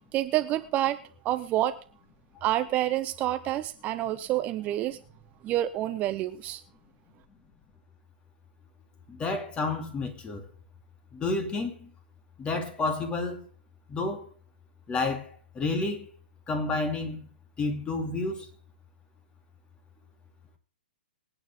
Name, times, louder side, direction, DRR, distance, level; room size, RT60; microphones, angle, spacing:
voice 1, 0.1-1.0 1.2-1.8 2.4-5.0 5.4-6.6, right 14 dB, 25° right, 0.7 m, -28 dB
voice 2, 9.1-10.4 11.1-11.9 12.4-13.4 13.9-14.2 14.9-15.2 15.5-16.1 16.5-17.2 17.6-18.5, left 3 dB, 20° left, 2.6 m, -30 dB
24.0 x 9.0 x 3.7 m
hypercardioid pair, 125°, 6 cm